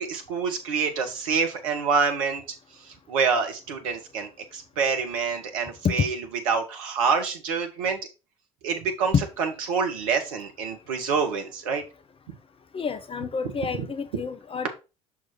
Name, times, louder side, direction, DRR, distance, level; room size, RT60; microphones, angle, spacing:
voice 1, 0.0-2.4 2.7-8.0 8.6-11.8 13.8-13.9 14.1-14.2, right 5 dB, 70° right, 5 dB, 1.2 m, -27 dB
voice 2, 12.7-14.7, left 5 dB, 30° left, 10 dB, 0.7 m, -30 dB
6.1 x 3.6 x 4.4 m, 0.29 s
figure-of-eight pair, 55°, 18 cm